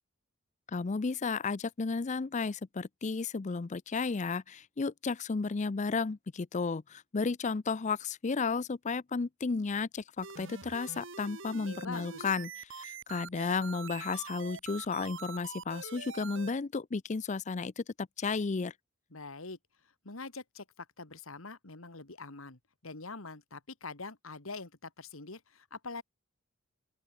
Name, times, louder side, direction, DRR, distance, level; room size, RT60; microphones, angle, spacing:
voice 1, 0.7-12.5 12.8-18.7, left 4 dB, 35° left, 0.5 m, -33 dB
sound 1, 10.2-16.5, right 5 dB, 65° right, 4.1 m, -45 dB
voice 2, 11.7-12.2 19.1-19.6 20.0-26.0, left 3 dB, 75° left, 2.3 m, -44 dB
open air
head